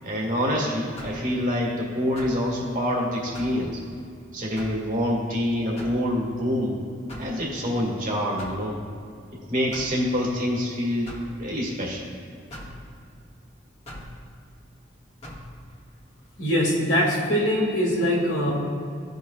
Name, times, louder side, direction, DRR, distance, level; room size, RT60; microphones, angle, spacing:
voice 1, 0.0-3.8 4.3-6.8 7.2-8.8 9.3-12.1, equal, 45° right, -2 dB, 1.8 m, -26 dB
sound 1, 1.0-1.3 2.2-2.4 3.3-3.6 4.6-4.8 5.8-6.1 7.1-7.4 8.4-8.7 9.7-10.0 11.1-11.3 12.5-12.8 13.9-14.1 15.2-15.5, equal, 35° left, 1.6 m, -40 dB
voice 2, 16.4-18.5, equal, 75° left, -2 dB, 2.0 m, -22 dB
15.5 x 5.4 x 2.3 m, 2.4 s
head